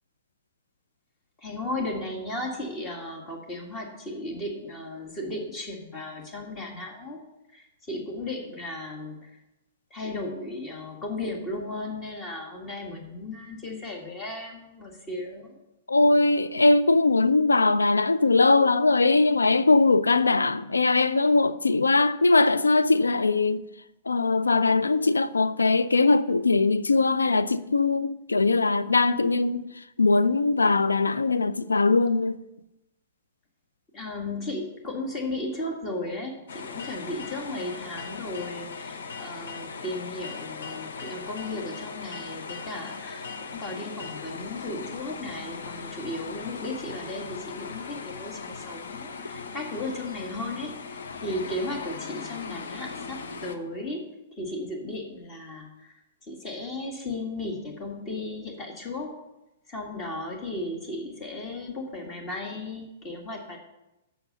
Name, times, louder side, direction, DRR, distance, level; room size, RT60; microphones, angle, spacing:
voice 1, 1.4-7.2 7.5-9.3 9.9-15.6 33.9-54.0 54.4-55.9 56.2-59.1 59.7-63.6, left 2 dB, 25° left, 1.9 m, -35 dB
voice 2, 15.9-23.6 24.1-29.7 30.0-32.4, left 3 dB, 85° left, 0.4 m, -21 dB
sound 1, 36.5-53.5, left 5 dB, 65° left, 0.8 m, -39 dB
7.9 x 6.4 x 6.7 m
figure-of-eight pair, 110°, 0 cm